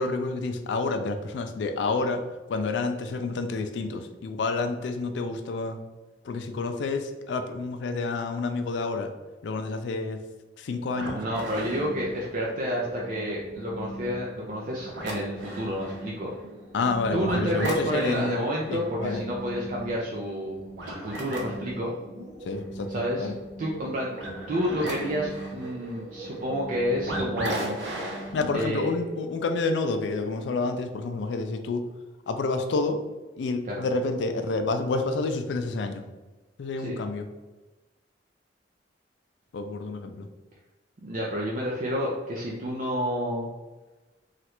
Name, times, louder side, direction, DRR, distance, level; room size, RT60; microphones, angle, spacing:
voice 1, 0.0-2.2 2.5-5.8 6.2-9.1 9.4-10.2 10.6-11.2 16.7-18.3 18.7-19.2 22.4-22.9 23.2-23.4 28.3-31.8 32.3-33.0 33.4-36.0 36.6-37.3 39.5-40.3, left 3 dB, 85° left, 7 dB, 0.4 m, -29 dB
sound 1, 10.9-28.6, right 1 dB, 80° right, 0.7 m, -37 dB
voice 2, 11.1-16.3 17.1-20.6 20.8-21.9 22.9-23.3 23.6-24.1 24.5-27.8 28.5-28.9 33.6-33.8 36.8-37.0 41.0-43.5, equal, 45° right, -3 dB, 0.4 m, -30 dB
3.1 x 2.4 x 2.9 m, 1.2 s
head